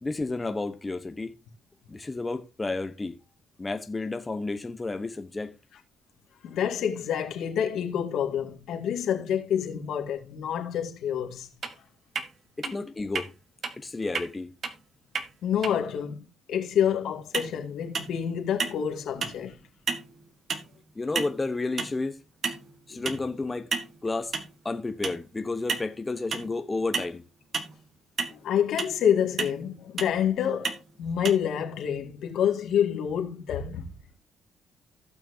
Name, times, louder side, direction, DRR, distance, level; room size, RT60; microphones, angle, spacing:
voice 1, 0.0-1.3 1.9-3.1 3.6-5.5 12.6-13.3 13.8-14.5 21.0-22.2 22.9-23.7 24.0-24.3 24.6-27.2, left 3 dB, 20° left, 1.1 m, -31 dB
voice 2, 6.4-11.5 12.6-12.8 15.4-19.6 22.9-23.0 28.3-30.7 31.0-33.9, left 9 dB, 75° left, 2.1 m, -28 dB
sound 1, 11.6-11.7 12.1-12.3 12.6-12.7 13.1-13.3 13.6-13.7 14.1-14.3 14.6-14.7 15.1-15.3 15.6-15.7 17.3-17.5 17.9-18.2 18.6-18.9 19.2-19.4 19.9-20.1 20.5-20.7 21.1-21.4 21.8-22.0 22.4-22.7 23.1-23.2 23.7-23.9 24.3-24.5 25.0-25.2 25.7-25.9 26.3-26.5 26.9-27.1 27.5-27.7 28.2-28.3 28.8-29.0 29.4-29.6 30.0-30.1 30.6-30.8 31.2-31.3, right 5 dB, 50° right, 1.5 m, -31 dB
16.5 x 6.1 x 2.8 m
cardioid pair, 90°, 0 cm